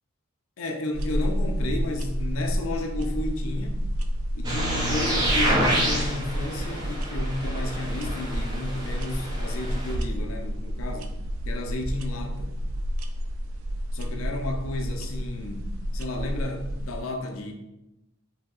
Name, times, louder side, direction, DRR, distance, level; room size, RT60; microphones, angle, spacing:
voice 1, 0.6-3.8 4.3-11.1 11.5-12.5 13.9-15.7 15.9-17.5, left 2 dB, 85° left, 3 dB, 0.5 m, -32 dB
sound 1, 0.9-17.0, equal, 85° right, 0.3 m, -30 dB
sound 2, 4.4-9.9, right 1 dB, 20° right, 0.5 m, -28 dB
3.3 x 2.7 x 2.3 m, 0.94 s
head